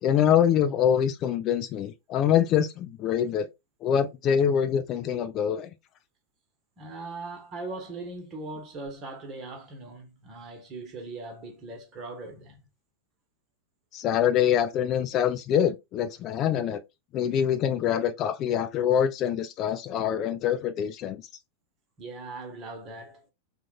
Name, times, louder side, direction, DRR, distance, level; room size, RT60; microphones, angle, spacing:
voice 1, 0.0-3.5 3.8-5.7 13.9-16.8 17.1-21.2, left 9 dB, 35° left, 0.4 m, -25 dB
voice 2, 6.8-12.6 22.0-23.3, right 3 dB, 30° right, 1.1 m, -40 dB
3.7 x 2.4 x 3.2 m
figure-of-eight pair, 90°, 0 cm